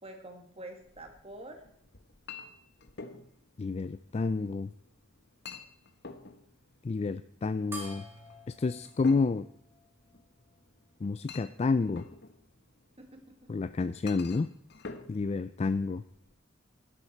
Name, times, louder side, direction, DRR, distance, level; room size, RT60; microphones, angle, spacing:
voice 1, 0.0-1.6 13.0-13.7 14.0-14.1, right 1 dB, 30° right, 4 dB, 2.1 m, -47 dB
Chink clink, 0.8-16.3, left 4 dB, 55° left, 1.1 m, -50 dB
voice 2, 3.6-4.7 6.8-8.0 8.5-9.4 11.0-12.0 13.5-14.5 15.1-16.0, left 4 dB, 30° left, 13 dB, 0.3 m, -29 dB
sound 1, 7.7-10.5, right 1 dB, 10° right, 3.7 m, -48 dB
12.0 x 11.0 x 4.5 m, 0.69 s
head